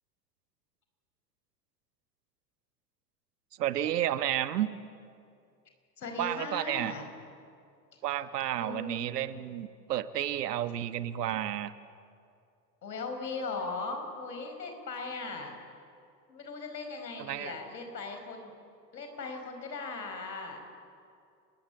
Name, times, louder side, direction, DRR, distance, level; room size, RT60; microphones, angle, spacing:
voice 1, 3.6-4.7 6.2-6.9 8.0-11.7 17.2-17.5, right 11 dB, 70° right, 12 dB, 1.4 m, -31 dB
voice 2, 6.0-7.0 8.6-9.4 12.8-15.6 16.3-18.5 18.9-20.6, left 3 dB, 80° left, 5 dB, 5.2 m, -38 dB
29.5 x 21.5 x 8.5 m, 2.4 s
hypercardioid pair, 85°, 49 cm